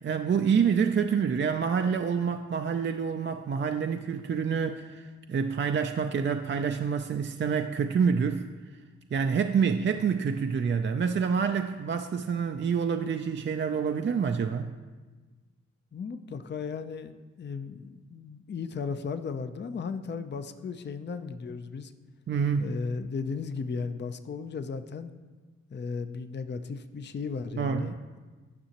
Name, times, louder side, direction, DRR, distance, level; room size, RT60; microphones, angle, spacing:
voice 1, 0.0-8.5 9.1-14.7 22.3-22.8 27.6-27.9, right 6 dB, 40° right, 6 dB, 0.4 m, -27 dB
voice 2, 15.9-17.1 17.4-21.9 22.6-25.1 25.7-28.2, left 5 dB, 40° left, 10 dB, 0.5 m, -35 dB
9.7 x 5.6 x 2.9 m, 1.3 s
cardioid pair, 45°, 29 cm